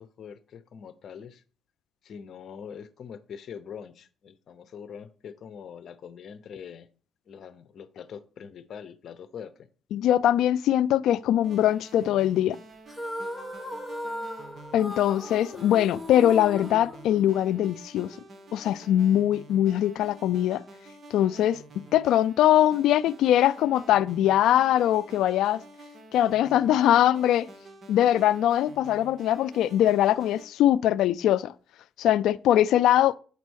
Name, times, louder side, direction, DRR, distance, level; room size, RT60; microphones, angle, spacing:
voice 1, 0.0-1.4 2.0-6.9 7.3-9.7, left 7 dB, 60° left, 0.8 m, -43 dB
voice 2, 9.9-12.6 14.7-18.1 18.5-20.6 21.1-25.6 26.1-27.5 27.9-31.5 32.0-33.2, left 12 dB, 85° left, 0.3 m, -22 dB
sound 1, 11.4-30.5, right 2 dB, 45° right, 1.4 m, -49 dB
sound 2, 12.9-17.7, left 1 dB, 10° left, 1.5 m, -37 dB
8.2 x 4.1 x 6.3 m
cardioid pair, 90°, 0 cm